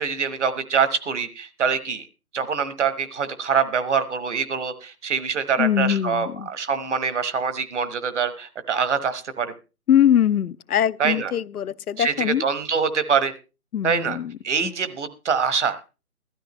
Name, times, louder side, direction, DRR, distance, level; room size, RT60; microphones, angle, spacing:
voice 1, 0.0-2.0 2.3-9.5 11.0-11.3 12.0-13.3 13.8-14.2 14.4-15.8, right 6 dB, 50° right, 1.2 m, -24 dB
voice 2, 5.6-6.5 9.9-12.5 13.7-14.3 14.6-14.7, left 10 dB, 85° left, 0.6 m, -22 dB
16.0 x 13.0 x 3.1 m
hypercardioid pair, 155°, 44 cm